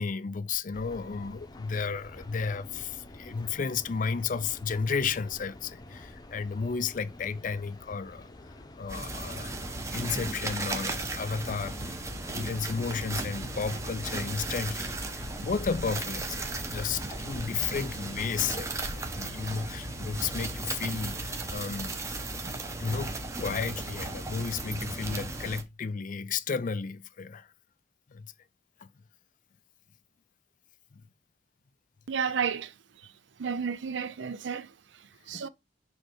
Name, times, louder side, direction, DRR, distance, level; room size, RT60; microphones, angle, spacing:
voice 1, 0.0-8.3 8.8-21.9 22.8-27.5 28.1-28.3 28.8-28.9 30.9-31.0 35.3-35.5, left 5 dB, 45° left, 0.4 m, -33 dB
sound 1, 0.7-19.0, left 1 dB, 20° left, 0.8 m, -48 dB
sound 2, 8.9-25.6, right 2 dB, 15° right, 0.9 m, -36 dB
voice 2, 32.1-32.7 33.0-33.1 33.4-35.5, right 6 dB, 75° right, 0.6 m, -32 dB
6.5 x 3.2 x 4.6 m
head